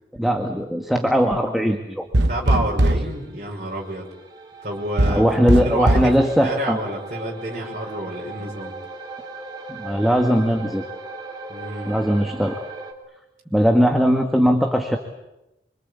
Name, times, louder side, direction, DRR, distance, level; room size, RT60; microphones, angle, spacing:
voice 1, 0.2-2.0 5.0-6.8 9.7-10.8 11.9-12.6 13.5-15.0, equal, ahead, 3 dB, 1.7 m, -19 dB
sound 1, 2.1-3.1 5.0-6.2, right 1 dB, 85° right, 1.1 m, -19 dB
voice 2, 2.3-4.1 4.6-6.1 6.4-8.7 11.5-12.0, right 1 dB, 45° right, -3 dB, 5.7 m, -29 dB
sound 2, 2.7-12.9, right 3 dB, 25° right, 3.8 m, -38 dB
26.5 x 24.5 x 8.5 m, 0.95 s
head